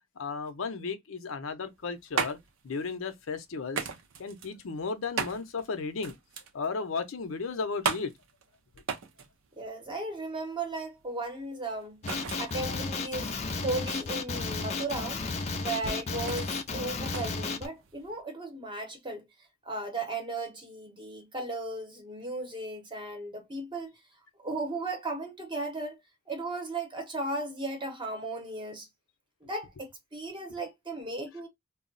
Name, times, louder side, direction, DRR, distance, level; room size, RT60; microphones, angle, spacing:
voice 1, 0.2-2.4 2.6-3.9 4.2-6.1 6.5-8.1, left 4 dB, 75° left, 0.6 m, -34 dB
sound 1, 1.6-18.2, right 5 dB, 75° right, 0.5 m, -39 dB
voice 2, 9.6-12.0 12.4-15.2 15.6-19.2 19.6-23.9 24.4-26.0 26.3-28.9 29.4-31.5, right 2 dB, 25° right, 0.8 m, -36 dB
Male speech man speaking, 12.0-17.7, left 4 dB, 30° left, 0.4 m, -33 dB
2.2 x 2.0 x 3.8 m
head